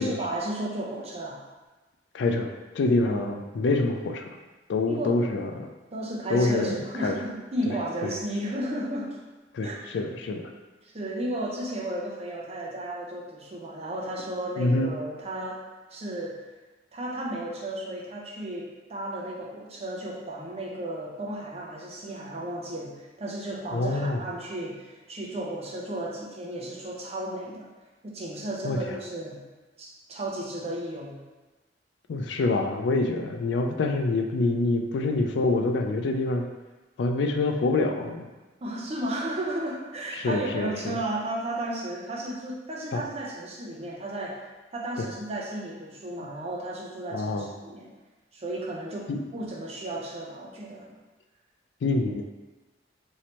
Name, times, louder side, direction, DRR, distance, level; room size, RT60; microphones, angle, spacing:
voice 1, 0.0-1.4 3.1-3.3 4.9-5.2 5.9-9.2 9.6-9.8 10.8-15.6 15.9-16.3 16.9-27.6 28.0-29.4 29.8-31.1 38.6-44.4 44.7-47.9 48.3-51.0, right 1 dB, 35° right, -3 dB, 0.6 m, -34 dB
voice 2, 2.1-2.5 2.7-4.3 4.7-5.7 6.3-7.2 8.0-8.1 9.5-10.5 14.6-14.9 23.7-24.2 28.6-28.8 32.1-36.5 37.0-38.3 40.1-41.0 42.9-43.0 45.0-45.1 47.1-47.5 49.1-49.2 51.8-52.2, left 2 dB, 70° left, 4 dB, 0.3 m, -26 dB
3.1 x 2.8 x 2.9 m, 1.2 s
head